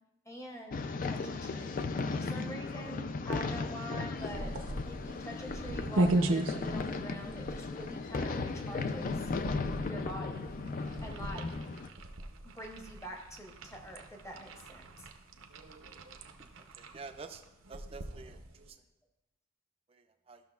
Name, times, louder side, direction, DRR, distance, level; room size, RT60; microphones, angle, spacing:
voice 1, 0.3-1.8 2.1-9.3 9.9-10.5 11.0-11.6 12.4-15.1, equal, 15° left, 2 dB, 0.8 m, -45 dB
sound 1, 0.7-11.9, left 4 dB, 40° left, 0.3 m, -36 dB
sound 2, 4.2-18.7, right 1 dB, 75° right, 0.6 m, -38 dB
voice 2, 16.8-17.4 17.7-18.4 18.7-18.8 19.9-20.4, right 4 dB, 30° right, 6 dB, 0.4 m, -48 dB
13.0 x 6.1 x 2.3 m, 0.98 s
head